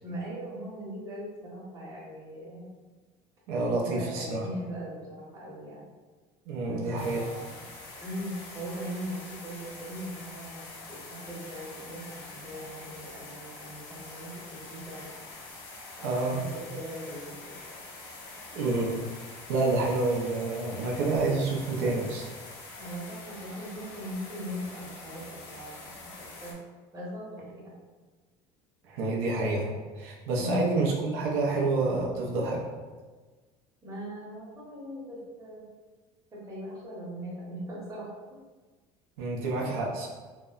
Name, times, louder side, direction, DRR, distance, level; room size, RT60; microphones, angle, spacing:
voice 1, 0.0-2.7 3.7-5.9 6.6-6.9 7.1-7.6 8.0-15.1 16.0-17.5 22.7-26.6 26.9-27.7 30.4-30.7 33.8-35.7 36.3-38.1, equal, 25° right, -6 dB, 0.8 m, -39 dB
voice 2, 3.5-4.5 6.5-7.2 16.0-16.4 18.5-19.0 19.5-22.3 28.9-32.6 39.2-40.1, right 3 dB, 90° right, -3 dB, 0.5 m, -28 dB
sound 1, 7.0-26.5, left 3 dB, 85° left, 0.6 m, -45 dB
2.7 x 2.0 x 2.3 m, 1.3 s
cardioid pair, 140°, 13 cm